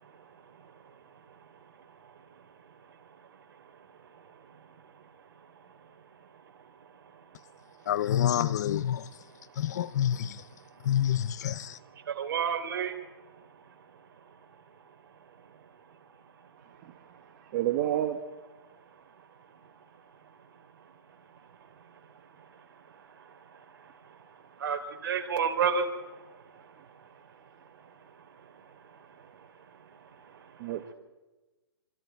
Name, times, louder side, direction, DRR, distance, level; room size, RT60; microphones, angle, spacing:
voice 1, 0.0-5.1 5.4-6.0 6.3-7.9 9.5-9.6 10.6-10.9 12.0-14.3 16.8-16.9 20.8-20.9 21.4-21.5 21.8-30.7, right 6 dB, 50° right, 3.6 m, -38 dB
voice 2, 7.9-9.1 9.5-10.5 10.8-11.8, left 10 dB, 40° left, 0.7 m, -28 dB
voice 3, 17.3-18.2 30.6-30.9, right 12 dB, 30° right, 1.4 m, -30 dB
26.0 x 26.0 x 4.6 m
hypercardioid pair, 160°, 14 cm